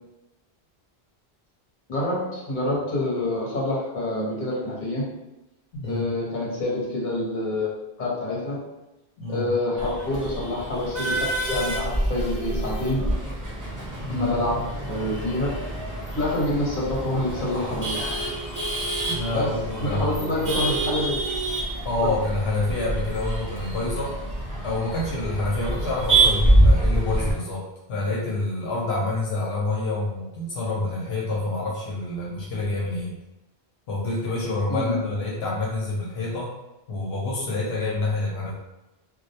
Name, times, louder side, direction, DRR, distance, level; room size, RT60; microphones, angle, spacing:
voice 1, 1.9-5.1 5.8-7.7 8.0-8.6 9.3-13.1 14.1-15.6 16.1-18.0 19.3-21.2 22.0-22.2 34.7-35.0, left 1 dB, 50° left, -5 dB, 0.8 m, -27 dB
voice 2, 5.7-6.1 9.2-9.5 14.0-14.3 19.0-20.5 21.8-24.2 24.6-27.6 27.9-33.1 33.9-36.5 36.9-38.5, left 2 dB, 75° left, -4 dB, 0.8 m, -27 dB
Male speech man speaking / Laughter / Chatter, 9.8-27.3, right 1 dB, 25° right, 0.5 m, -26 dB
2.2 x 2.0 x 2.7 m, 0.98 s
omnidirectional pair, 1.1 m